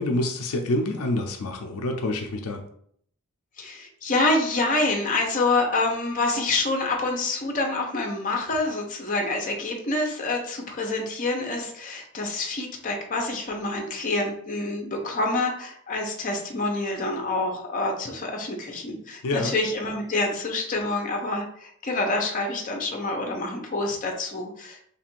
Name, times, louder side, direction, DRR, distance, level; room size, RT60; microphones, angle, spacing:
voice 1, 0.0-2.6 19.2-19.5, left 1 dB, 85° left, 4 dB, 0.5 m, -27 dB
voice 2, 3.6-24.8, left 2 dB, 40° left, 2 dB, 0.7 m, -27 dB
3.3 x 2.5 x 4.4 m, 0.65 s
head